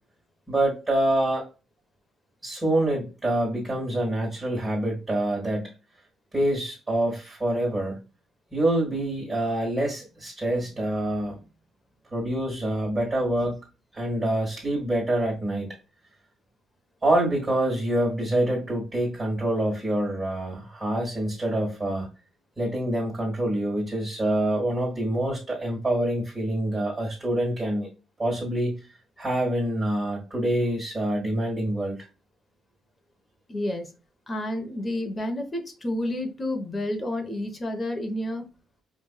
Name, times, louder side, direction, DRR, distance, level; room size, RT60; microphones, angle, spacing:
voice 1, 0.5-1.4 2.4-5.7 6.3-8.0 8.5-11.4 12.1-13.6 13.9-15.7 17.0-22.1 22.6-27.9 28.2-28.8 29.2-32.0, right 1 dB, 20° right, -2 dB, 1.6 m, -26 dB
voice 2, 33.5-33.9 34.3-38.5, left 1 dB, 30° left, 5 dB, 1.0 m, -30 dB
4.9 x 2.5 x 2.3 m, 0.32 s
cardioid pair, 90°, 0 cm